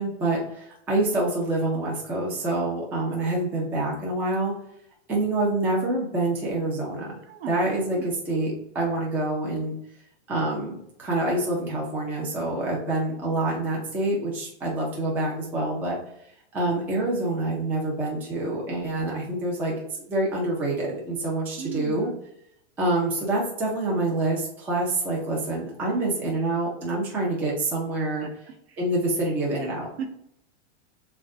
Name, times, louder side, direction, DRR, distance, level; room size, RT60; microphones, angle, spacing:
voice 1, 0.0-4.5 5.1-7.1 7.5-9.8 10.3-16.0 16.5-22.1 22.8-28.3 28.8-29.9, right 2 dB, 5° right, -3 dB, 0.4 m, -26 dB
voice 2, 7.2-7.6 7.9-8.1 21.6-22.2 28.2-28.3 28.7-28.8 30.0-30.1, right 7 dB, 60° right, 6 dB, 1.0 m, -36 dB
6.4 x 2.2 x 3.6 m, 0.75 s
supercardioid pair, 160°, 34 cm